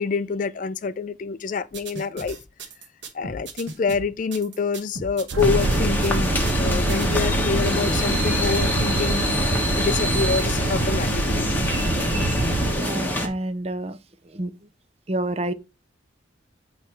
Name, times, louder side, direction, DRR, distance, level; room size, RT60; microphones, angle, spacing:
voice 1, 0.0-2.4 3.1-9.3 9.8-11.5, left 5 dB, 40° left, 0.3 m, -26 dB
sound 1, 1.7-7.2, right 2 dB, 65° right, 1.2 m, -37 dB
sound 2, 5.3-12.7, right 3 dB, 90° right, 0.7 m, -26 dB
sound 3, 5.4-13.3, left 1 dB, 10° left, 1.1 m, -25 dB
voice 2, 12.7-14.0 14.3-14.5 15.1-15.5, right 1 dB, 30° right, 0.5 m, -28 dB
7.9 x 3.1 x 4.5 m
head